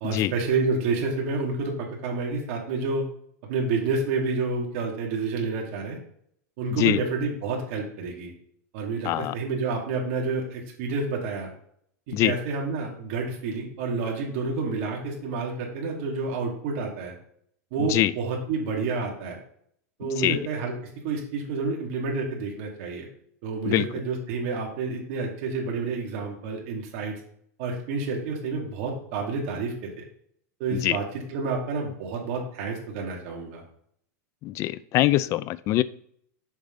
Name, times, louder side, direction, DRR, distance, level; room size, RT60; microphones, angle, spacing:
voice 1, 0.0-3.0 3.5-6.0 6.6-8.3 8.7-11.5 12.1-17.1 17.7-19.4 20.0-20.7 21.0-23.1 23.4-27.1 27.6-30.0 30.6-33.6, right 4 dB, 55° right, -1 dB, 2.3 m, -29 dB
voice 2, 20.0-20.4 23.7-23.9 30.7-31.0 34.4-35.8, left 15 dB, 35° left, 17 dB, 0.3 m, -23 dB
7.1 x 5.6 x 3.8 m, 0.67 s
supercardioid pair, 140°, 9 cm